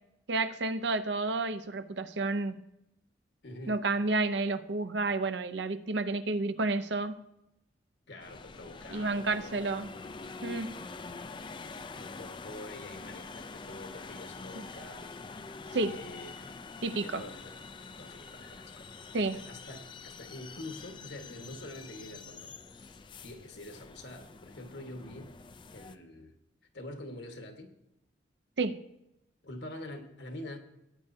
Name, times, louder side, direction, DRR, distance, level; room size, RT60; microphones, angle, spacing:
voice 1, 0.3-2.6 3.7-7.2 8.9-9.9 10.4-10.7 14.5-14.6 15.7-16.0 16.8-17.2 19.1-19.4 28.6-28.8, right 3 dB, 65° right, 11 dB, 0.6 m, -30 dB
voice 2, 3.4-3.8 8.1-9.6 11.9-15.1 15.5-16.5 17.0-17.6 18.0-18.9 19.4-22.6 23.2-25.4 25.7-26.4 26.7-27.7 29.4-30.6, left 1 dB, 65° left, 5 dB, 1.5 m, -46 dB
sound 1, 8.2-26.0, left 4 dB, 25° left, 0.4 m, -46 dB
17.5 x 9.2 x 2.7 m, 0.85 s
head